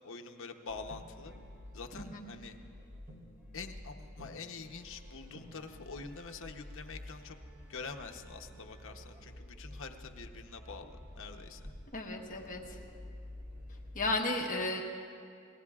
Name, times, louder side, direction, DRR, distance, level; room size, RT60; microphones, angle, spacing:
voice 1, 0.0-1.3 1.7-2.6 3.5-7.4 7.7-11.6, left 4 dB, 65° left, 5 dB, 0.9 m, -46 dB
sound 1, 0.7-14.1, left 1 dB, 10° right, 3.3 m, -50 dB
voice 2, 11.9-12.8 13.9-14.8, left 2 dB, 40° left, 1 dB, 1.1 m, -34 dB
28.5 x 20.0 x 2.4 m, 2.4 s
head